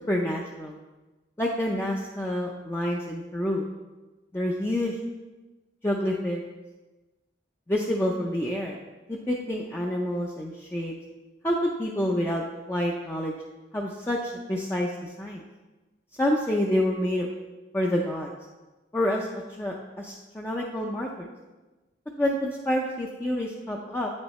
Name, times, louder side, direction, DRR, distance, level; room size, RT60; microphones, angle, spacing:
voice 1, 0.1-0.8 1.4-3.7 4.3-5.0 5.8-6.4 7.7-8.8 9.1-10.9 11.4-12.4 12.7-13.3 13.7-15.4 16.2-17.3 17.7-18.3 18.9-19.3 19.6-21.3 22.2-24.1, left 1 dB, 15° left, -1 dB, 0.5 m, -28 dB
8.7 x 6.4 x 3.1 m, 1.2 s
head